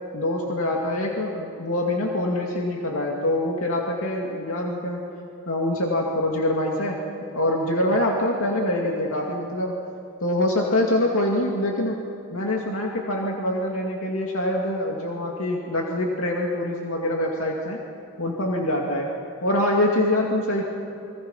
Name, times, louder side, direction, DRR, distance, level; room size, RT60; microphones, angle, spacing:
voice 1, 0.1-5.0 5.5-7.1 7.3-9.7 10.2-12.0 12.3-17.8 18.2-19.1 19.4-20.6, left 1 dB, 80° left, -1 dB, 2.4 m, -24 dB
29.5 x 23.5 x 5.7 m, 2.8 s
head